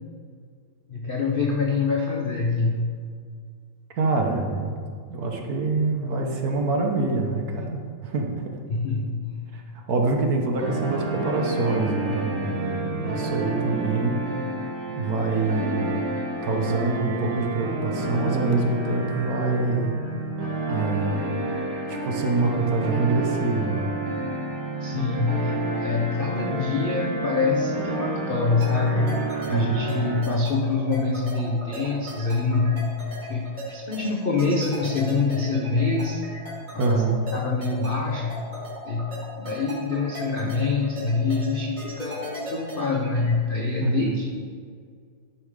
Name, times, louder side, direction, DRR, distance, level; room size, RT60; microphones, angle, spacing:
voice 1, 0.9-2.9 8.7-9.4 24.8-32.9 33.2-36.2 36.7-37.0 37.3-38.4 38.8-44.4, left 3 dB, 80° left, 0 dB, 0.4 m, -25 dB
voice 2, 3.9-8.6 9.5-14.2 14.9-15.9 16.4-19.9 20.7-21.3 21.9-23.9 29.5-29.8 36.8-37.2 43.8-44.1, right 3 dB, 55° right, 1 dB, 1.4 m, -25 dB
sound 1, 10.6-30.2, right 2 dB, 80° right, 2.6 m, -30 dB
sound 2, 28.6-43.3, equal, 20° right, 2.5 m, -38 dB
12.0 x 5.5 x 4.9 m, 2.1 s
omnidirectional pair, 2.2 m